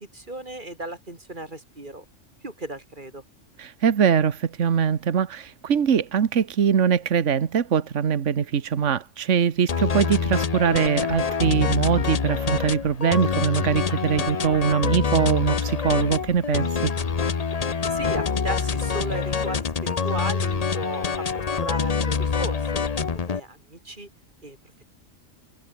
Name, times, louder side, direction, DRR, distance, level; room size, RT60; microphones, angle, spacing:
voice 1, 0.0-2.0 2.4-3.2 17.9-22.9 23.1-24.1 24.4-24.8, right 2 dB, 40° right, 4.1 m, -36 dB
voice 2, 3.6-16.9, right 7 dB, 70° right, 1.5 m, -22 dB
sound 1, 9.7-23.4, left 5 dB, 35° left, 0.9 m, -26 dB
omnidirectional pair, 1.3 m